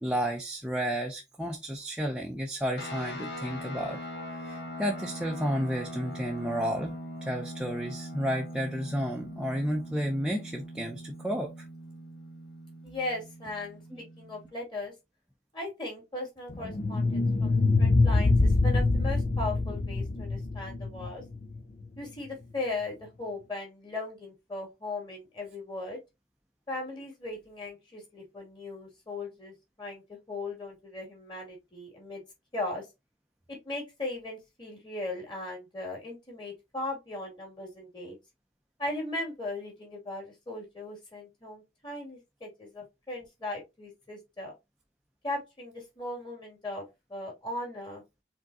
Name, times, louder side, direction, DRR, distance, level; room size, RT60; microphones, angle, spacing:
voice 1, 0.0-4.0 4.3-11.7, equal, 5° right, 0.6 m, -32 dB
sound 1, 2.8-14.5, equal, 85° left, 2.0 m, -41 dB
voice 2, 12.8-14.9 15.5-21.2 22.0-26.0 26.7-32.2 32.5-32.9 33.5-38.2 38.8-44.5 45.2-48.0, left 2 dB, 25° left, 2.5 m, -38 dB
sound 2, 16.5-21.6, left 3 dB, 45° left, 0.5 m, -25 dB
5.0 x 3.6 x 2.7 m
head